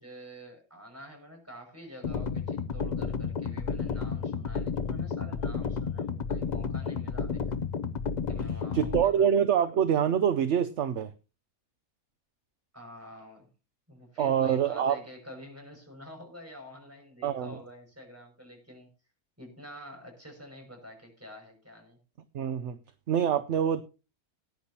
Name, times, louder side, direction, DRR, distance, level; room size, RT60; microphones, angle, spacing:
voice 1, 0.0-7.6 8.3-9.3 12.7-13.5 13.9-18.9 19.4-22.0, equal, 10° right, 1 dB, 6.0 m, -48 dB
sound 1, 2.0-9.0, left 5 dB, 50° left, 0.5 m, -32 dB
voice 2, 8.7-11.1 14.2-15.0 17.2-17.5 22.3-22.8 23.1-23.8, right 8 dB, 60° right, 9 dB, 0.9 m, -25 dB
19.5 x 10.0 x 2.8 m, 0.31 s
omnidirectional pair, 1.5 m